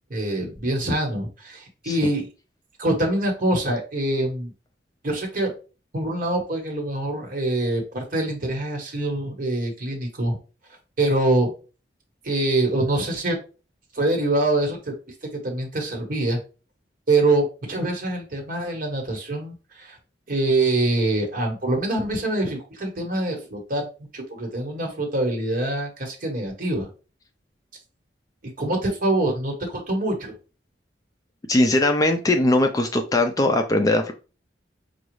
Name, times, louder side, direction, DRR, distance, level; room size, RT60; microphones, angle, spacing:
voice 1, 0.1-2.3 2.8-4.5 5.0-5.5 5.9-10.4 11.0-11.5 12.2-13.4 13.9-14.9 15.4-16.4 17.1-20.0 20.3-23.9 24.1-26.9 28.6-30.3, right 2 dB, 50° right, 1 dB, 1.2 m, -24 dB
voice 2, 31.5-34.1, left 2 dB, 20° left, 5 dB, 0.3 m, -20 dB
5.0 x 2.3 x 3.1 m, 0.34 s
head